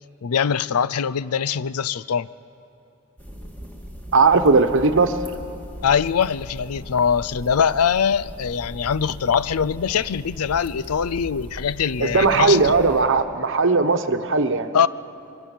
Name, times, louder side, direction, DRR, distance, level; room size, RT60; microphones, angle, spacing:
voice 1, 0.2-2.3 5.8-12.7 14.7-14.9, left 7 dB, 85° left, 0.5 m, -22 dB
sound 1, 3.2-13.0, equal, 10° left, 2.4 m, -39 dB
voice 2, 4.1-5.1 12.0-14.7, right 4 dB, 60° right, 1.1 m, -18 dB
26.0 x 23.0 x 7.3 m
head